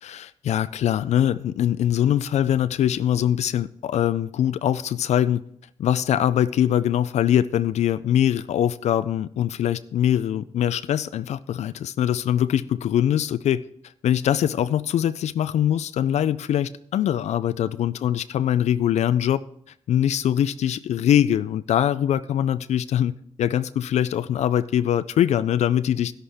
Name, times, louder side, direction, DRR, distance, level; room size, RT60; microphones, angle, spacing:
voice 1, 0.0-5.4 5.8-13.6 14.0-19.4 19.9-23.1 23.4-26.1, left 10 dB, 80° left, 0.4 m, -22 dB
11.5 x 11.0 x 3.5 m
cardioid pair, 60°, 11 cm